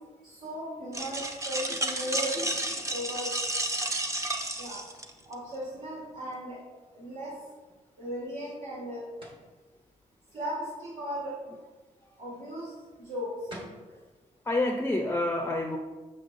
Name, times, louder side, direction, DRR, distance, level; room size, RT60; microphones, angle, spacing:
voice 1, 0.2-2.3 2.9-3.3 4.6-4.8 5.2-6.6 6.9-7.4 8.0-9.1 10.3-11.4 12.2-12.7 13.0-13.6, equal, 70° right, -7 dB, 2.1 m, -36 dB
sound 1, 0.9-5.3, right 1 dB, 20° right, 0.7 m, -31 dB
sound 2, 9.2-9.5 13.2-13.3 13.5-13.9, right 1 dB, 35° right, 1.4 m, -44 dB
voice 2, 14.5-15.8, left 2 dB, 15° left, 3 dB, 0.5 m, -28 dB
7.7 x 6.6 x 2.6 m, 1.3 s
cardioid pair, 105°, 14 cm